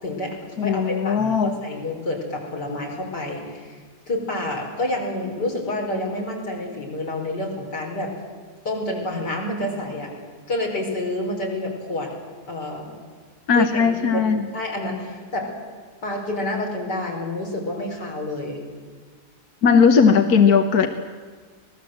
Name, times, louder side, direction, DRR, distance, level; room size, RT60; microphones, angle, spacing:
voice 1, 0.0-3.8 4.1-8.1 8.7-10.1 10.5-12.1 12.5-12.9 13.5-14.2 14.5-15.5 16.0-18.6, left 1 dB, 90° left, 0 dB, 5.5 m, -28 dB
voice 2, 0.6-1.5 13.5-14.5 19.6-20.9, left 6 dB, 65° left, 6 dB, 1.6 m, -17 dB
26.0 x 19.5 x 7.9 m, 1.5 s
omnidirectional pair, 1.7 m